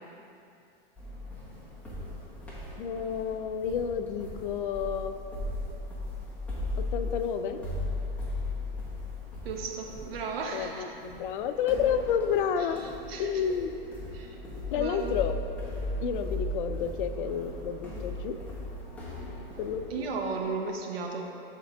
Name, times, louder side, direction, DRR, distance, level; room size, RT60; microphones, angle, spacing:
sound 1, 1.0-20.5, left 1 dB, 5° left, 1.3 m, -37 dB
voice 1, 2.8-5.1 6.9-7.7 10.5-12.8 13.2-13.7 14.7-15.3 16.0-18.3 19.6-19.8, left 8 dB, 60° left, 9 dB, 0.5 m, -30 dB
voice 2, 9.4-10.8 12.6-13.6 14.1-14.4 14.7-15.1 19.9-21.3, right 4 dB, 80° right, 2 dB, 1.1 m, -35 dB
11.0 x 3.7 x 3.5 m, 2.6 s
hypercardioid pair, 140°, 29 cm